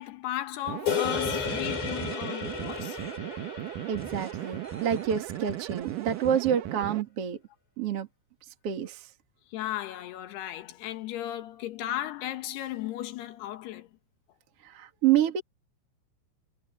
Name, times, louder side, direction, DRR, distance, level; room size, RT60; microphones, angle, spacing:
voice 1, 0.0-3.0 9.5-13.9, left 13 dB, 70° left, 3.2 m, -35 dB
sound 1, 0.7-7.0, right 13 dB, 75° right, 2.0 m, -37 dB
sound 2, 0.9-5.3, left 8 dB, 45° left, 7.7 m, -34 dB
sound 3, 1.1-3.3 4.0-4.3 4.6-6.5, equal, 5° right, 1.9 m, -44 dB
voice 2, 3.9-7.4 7.8-8.1 8.6-9.1 14.6-15.4, right 10 dB, 50° right, 2.0 m, -28 dB
omnidirectional pair, 5.1 m